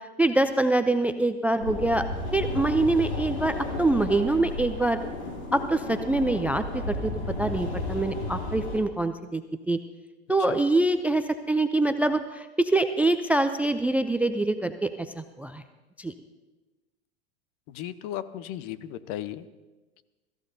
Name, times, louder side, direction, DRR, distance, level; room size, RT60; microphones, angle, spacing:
voice 1, 0.2-2.0 2.3-5.0 5.5-7.1 7.4-9.4 9.7-9.8 10.3-14.9 15.2-15.6 16.0-16.1, right 2 dB, 5° right, 10 dB, 0.4 m, -25 dB
sound 1, 1.6-8.8, left 2 dB, 85° left, 5.6 m, -33 dB
voice 2, 17.7-19.4, left 12 dB, 50° left, 14 dB, 0.9 m, -35 dB
23.5 x 14.0 x 2.7 m, 1.2 s
hypercardioid pair, 105°, 32 cm